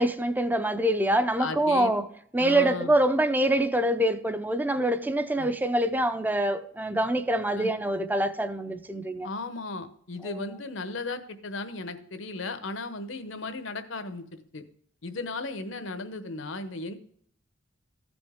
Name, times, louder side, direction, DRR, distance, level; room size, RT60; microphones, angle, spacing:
voice 1, 0.0-2.0 2.3-9.3 10.2-10.5, right 1 dB, 10° right, 0.5 m, -25 dB
voice 2, 1.4-1.9 2.4-2.9 5.3-5.5 7.5-7.7 9.2-14.6 15.0-16.9, left 3 dB, 70° left, 0.9 m, -36 dB
15.0 x 5.3 x 3.6 m
head